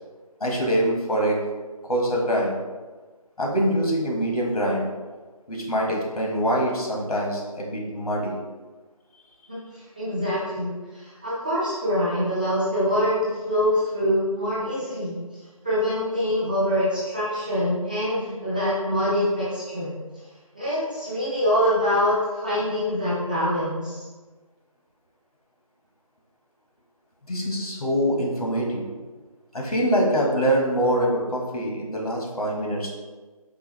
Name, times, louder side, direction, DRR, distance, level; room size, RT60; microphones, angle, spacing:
voice 1, 0.4-1.4 1.9-2.6 3.4-4.9 5.5-8.4 27.3-28.9 29.5-32.9, equal, 80° left, -2 dB, 1.3 m, -24 dB
voice 2, 9.5-15.1 15.6-20.0 20.5-24.1, equal, 15° right, -11 dB, 0.6 m, -25 dB
4.7 x 2.7 x 3.1 m, 1.3 s
figure-of-eight pair, 165°, 19 cm